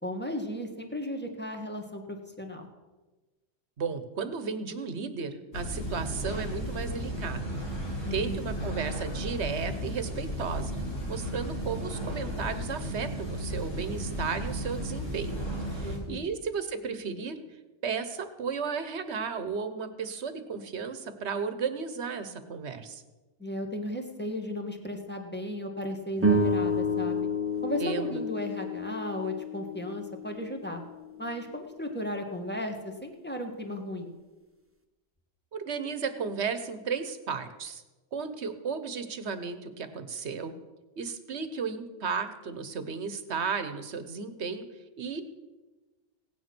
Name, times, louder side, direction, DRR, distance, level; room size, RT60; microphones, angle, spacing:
voice 1, 0.0-2.7 8.0-8.4 15.7-16.3 23.4-27.3 27.6-30.8 31.2-34.1, left 1 dB, 10° left, 3 dB, 1.6 m, -35 dB
voice 2, 3.8-7.4 8.1-10.7 11.1-15.4 15.7-17.4 17.8-23.0 27.8-28.2 35.5-37.8 38.1-40.5 41.0-44.6 45.0-45.2, right 5 dB, 70° right, 11 dB, 1.3 m, -34 dB
sound 1, 5.5-16.0, equal, 90° left, 4.1 m, -34 dB
sound 2, 26.2-30.7, left 1 dB, 10° right, 1.0 m, -29 dB
16.5 x 9.6 x 6.1 m, 1.2 s
omnidirectional pair, 1.2 m